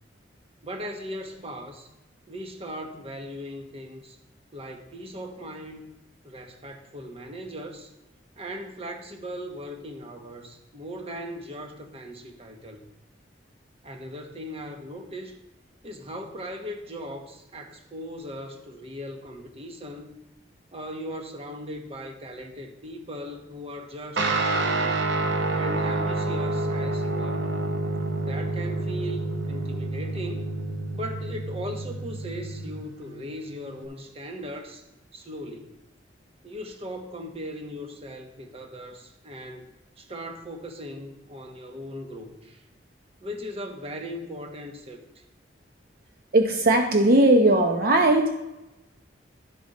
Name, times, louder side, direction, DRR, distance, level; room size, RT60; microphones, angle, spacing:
voice 1, 0.6-1.9 2.3-4.2 4.5-6.0 6.2-7.9 8.4-12.8 13.8-15.4 15.8-20.2 20.7-25.0 25.5-27.5 28.2-30.4 30.9-34.8 35.1-35.8 36.4-42.6 43.2-45.2, equal, 35° right, 4 dB, 1.0 m, -38 dB
Guitar, 24.2-33.8, right 2 dB, 85° right, 0.9 m, -28 dB
voice 2, 46.3-48.3, right 1 dB, 55° right, 3 dB, 0.8 m, -18 dB
12.0 x 5.1 x 4.1 m, 0.98 s
head